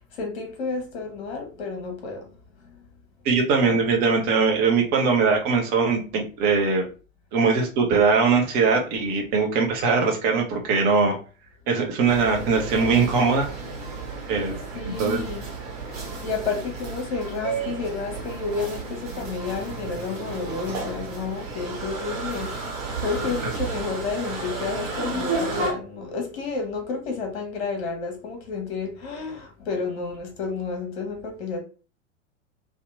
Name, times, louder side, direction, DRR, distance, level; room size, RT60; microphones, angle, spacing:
voice 1, 0.1-2.3 2.7-2.8 14.7-15.5 16.0-22.7 23.0-31.6, left 4 dB, 50° left, 0.9 m, -31 dB
voice 2, 3.2-6.9 7.3-11.2 11.7-13.5 14.3-14.5 14.8-15.2, right 4 dB, 25° right, 0.6 m, -21 dB
sound 1, 12.1-25.7, right 3 dB, 50° right, 1.0 m, -32 dB
2.7 x 2.2 x 2.4 m
figure-of-eight pair, 95°, 40 cm